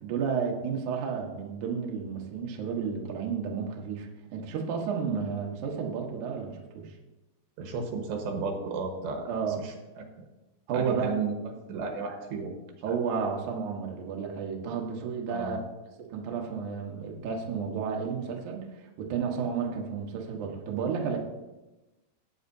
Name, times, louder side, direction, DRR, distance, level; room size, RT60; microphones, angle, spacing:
voice 1, 0.0-6.9 9.3-9.6 10.7-11.2 12.8-15.6 16.0-21.2, right 6 dB, 60° right, 0 dB, 2.2 m, -32 dB
voice 2, 7.6-9.3 9.6-10.1 10.7-11.4 11.7-12.5 12.9-13.0 15.3-15.6, right 4 dB, 80° right, 2 dB, 3.5 m, -33 dB
17.5 x 8.6 x 2.7 m, 1.1 s
omnidirectional pair, 5.0 m